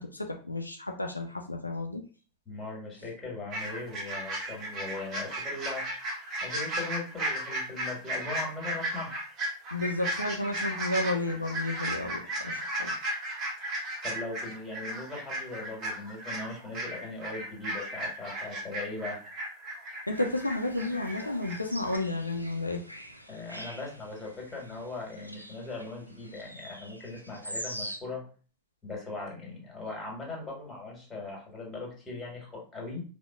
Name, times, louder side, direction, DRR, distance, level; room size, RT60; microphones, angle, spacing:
voice 1, 0.0-2.0 9.7-12.9 20.1-22.8, left 2 dB, 85° left, 3 dB, 0.4 m, -32 dB
voice 2, 2.4-5.9 6.4-9.1 14.0-19.2 23.3-28.2 28.8-33.0, left 3 dB, 15° left, -2 dB, 1.5 m, -39 dB
sound 1, 3.5-21.6 21.9-22.0, right 1 dB, 30° right, 1.1 m, -35 dB
sound 2, 20.1-28.0, equal, 90° right, 0.4 m, -44 dB
4.4 x 2.1 x 2.3 m, 0.38 s
figure-of-eight pair, 90°, 0 cm